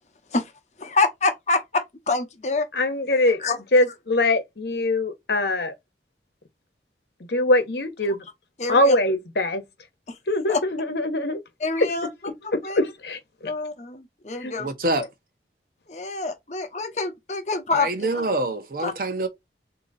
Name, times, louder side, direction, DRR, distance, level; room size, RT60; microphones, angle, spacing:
voice 1, 0.8-2.7 3.4-3.6 8.6-9.0 10.1-10.2 10.5-10.6 11.6-12.1 12.4-12.8 13.4-14.7 15.9-18.1 18.8-18.9, left 3 dB, 40° left, 0.8 m, -26 dB
voice 2, 2.7-3.4 3.7-5.7 7.3-8.2 8.7-9.6 10.3-11.4 11.8-11.9 12.5-13.5 14.4-14.5, left 2 dB, 70° left, 1.0 m, -22 dB
voice 3, 14.6-15.1 17.7-19.3, right 2 dB, 55° right, 0.8 m, -26 dB
3.8 x 2.8 x 4.0 m
head